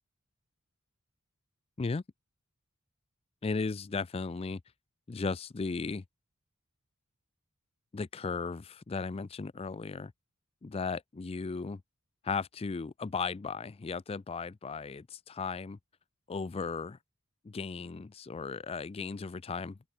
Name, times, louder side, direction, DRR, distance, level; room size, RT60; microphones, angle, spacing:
voice 1, 3.4-4.6 5.1-6.0 7.9-10.1 10.6-11.8 12.2-15.8 16.3-17.0 17.4-19.9, left 4 dB, 25° left, 0.4 m, -36 dB
open air
head